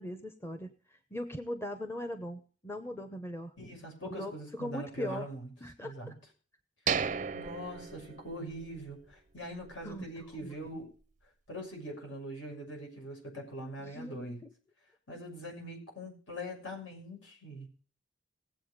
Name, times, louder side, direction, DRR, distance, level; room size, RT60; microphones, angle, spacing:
voice 1, 0.0-3.5 4.0-5.3 5.6-6.1 9.8-10.3 13.8-14.4, equal, 10° left, 8 dB, 0.9 m, -40 dB
voice 2, 3.6-5.5 5.8-6.1 7.3-10.9 11.5-14.4 15.1-17.7, equal, 70° left, 1 dB, 6.4 m, -42 dB
sound 1, 6.9-8.8 9.1-9.2 9.7-9.9, right 6 dB, 35° right, 0.5 m, -34 dB
19.0 x 8.0 x 5.1 m, 0.40 s
head